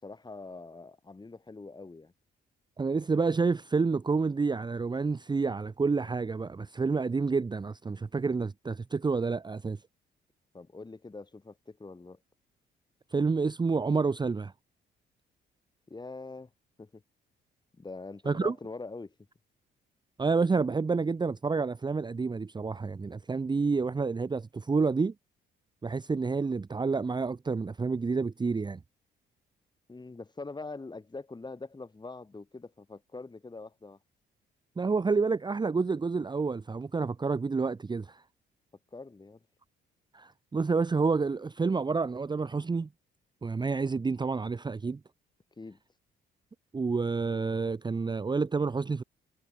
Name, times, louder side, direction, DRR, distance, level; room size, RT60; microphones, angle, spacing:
voice 1, 0.0-2.1 10.5-12.2 15.9-16.5 16.8-17.0 17.7-19.1 29.9-34.0 38.9-39.4 45.6-45.8, left 3 dB, 20° left, 3.5 m, -43 dB
voice 2, 2.8-9.8 13.1-14.5 18.3-18.5 20.2-25.1 25.8-28.8 34.8-38.2 40.1-42.9 43.4-45.0 46.7-49.0, right 4 dB, 20° right, 0.8 m, -29 dB
cardioid pair, 90°, 20 cm